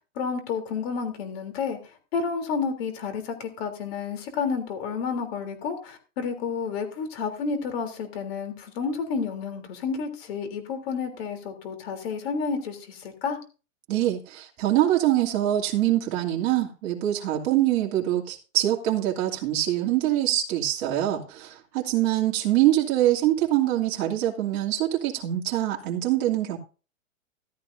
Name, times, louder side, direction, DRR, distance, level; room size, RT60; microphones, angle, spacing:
voice 1, 0.0-1.8 2.1-13.4, left 5 dB, 50° left, 3.3 m, -30 dB
voice 2, 13.9-26.6, right 13 dB, 40° right, 2.7 m, -24 dB
14.5 x 13.5 x 2.6 m
hypercardioid pair, 155°, 40 cm